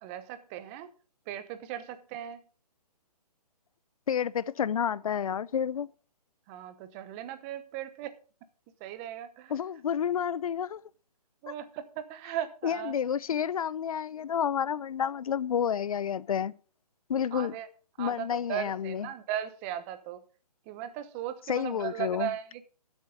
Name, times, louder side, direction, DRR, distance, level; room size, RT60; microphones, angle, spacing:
voice 1, 0.0-0.9 1.3-2.4 6.5-8.2 8.8-9.5 11.4-12.9 17.3-17.7 18.0-20.2 20.7-22.6, right 11 dB, 20° right, 0.9 m, -37 dB
voice 2, 4.1-5.9 9.5-10.8 12.6-16.5 17.1-17.6 18.0-19.1 21.5-22.3, left 8 dB, 60° left, 0.6 m, -30 dB
12.5 x 8.1 x 5.0 m
hypercardioid pair, 150°, 21 cm